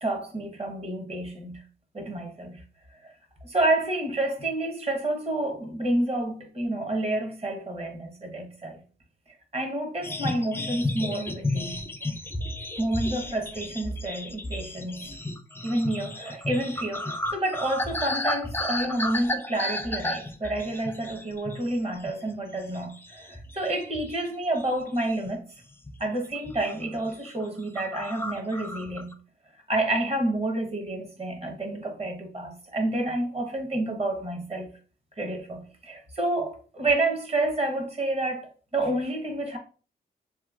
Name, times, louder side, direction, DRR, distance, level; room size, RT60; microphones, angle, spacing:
voice 1, 0.0-1.6 1.9-2.6 3.0-3.1 3.4-8.8 9.5-11.8 12.8-15.1 15.6-25.4 26.0-29.2 29.7-34.7 35.2-39.6, right 1 dB, 35° right, 1.0 m, -29 dB
sound 1, 10.0-21.7 22.1-22.3 22.7-24.3 24.6-25.3 25.8-26.1 26.4-26.7 27.0-27.1 27.4-27.5 27.8-29.1, left 1 dB, 10° left, 0.4 m, -33 dB
3.1 x 2.9 x 2.4 m
cardioid pair, 75°, 18 cm